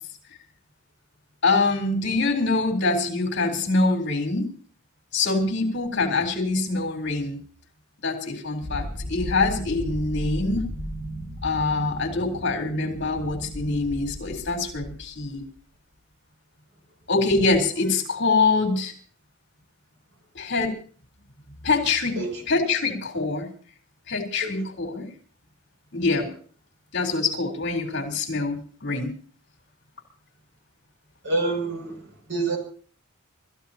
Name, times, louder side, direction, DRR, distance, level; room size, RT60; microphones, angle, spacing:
voice 1, 1.4-4.5 5.1-7.4 8.0-10.6 11.4-15.4 17.1-18.9 20.3-20.7 21.6-22.2 22.5-23.5 24.1-25.1 25.9-26.3 26.9-29.1, left 3 dB, 55° left, 4.0 m, -24 dB
sound 1, 8.6-15.4, equal, 30° right, 5.7 m, -35 dB
voice 2, 31.2-32.0 32.3-32.6, right 2 dB, 60° right, 7.0 m, -27 dB
27.5 x 14.5 x 2.9 m
head